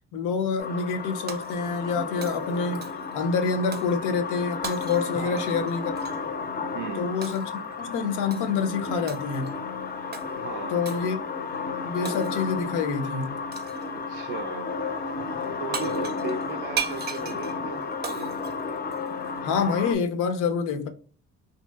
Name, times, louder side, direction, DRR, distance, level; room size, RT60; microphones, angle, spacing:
voice 1, 0.1-2.9 3.1-5.9 7.0-7.5 7.8-9.5 10.7-11.2 11.8-13.4 19.4-20.9, left 5 dB, 90° left, 0.6 m, -27 dB
sound 1, 0.6-19.9, left 4 dB, 30° left, 0.4 m, -33 dB
Shatter, 1.3-1.9 2.2-3.2 3.7-4.0 4.6-6.2 7.2-7.6 8.3-8.6 9.1-9.6 10.1-10.3 10.9-11.1 12.1-12.6 13.5-13.9 15.4-15.5 15.7-19.3, right 6 dB, 35° right, 0.5 m, -37 dB
voice 2, 5.1-5.7 6.7-7.2 10.2-10.8 13.9-14.8 15.6-18.4, right 6 dB, 85° right, 0.5 m, -37 dB
2.7 x 2.7 x 2.2 m
cardioid pair, 90°, 30 cm